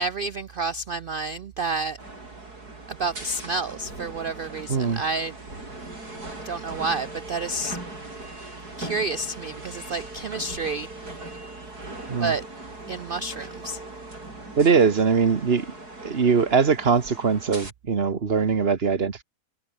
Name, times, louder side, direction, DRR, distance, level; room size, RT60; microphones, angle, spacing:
voice 1, 0.0-2.0 2.9-5.4 6.4-7.8 8.8-11.1 12.2-12.4 12.9-13.8, right 3 dB, 90° right, 0.4 m, -29 dB
sound 1, 2.0-17.7, right 2 dB, 70° right, 8.2 m, -40 dB
voice 2, 4.7-5.0 12.1-12.3 14.6-15.7 16.0-19.2, right 5 dB, 40° right, 1.5 m, -21 dB
omnidirectional pair, 1.7 m